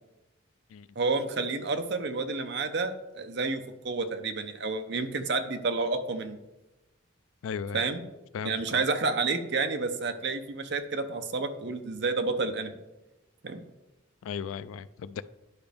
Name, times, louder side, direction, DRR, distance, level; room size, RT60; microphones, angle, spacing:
voice 1, 1.0-6.4 7.7-8.0 8.4-12.8 13.4-13.6, right 3 dB, 55° right, 7 dB, 0.7 m, -30 dB
voice 2, 7.4-7.8 8.3-8.8 14.2-15.2, left 7 dB, 80° left, 16 dB, 0.3 m, -36 dB
10.5 x 5.1 x 3.4 m, 1.0 s
head